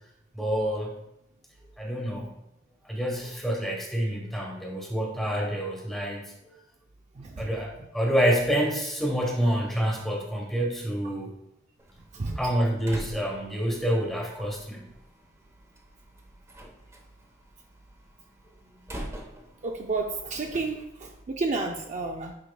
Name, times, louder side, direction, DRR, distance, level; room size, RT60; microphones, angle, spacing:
voice 1, 0.3-0.9 1.8-2.4 2.8-6.2 7.4-11.4 12.4-14.8 18.7-18.8, equal, ahead, -1 dB, 1.2 m, -27 dB
voice 2, 7.1-7.5 12.1-12.6 19.6-22.3, right 3 dB, 35° right, 2 dB, 0.4 m, -31 dB
Slam, 11.8-21.2, right 1 dB, 15° right, 0.9 m, -46 dB
9.9 x 4.7 x 2.3 m, 0.87 s
head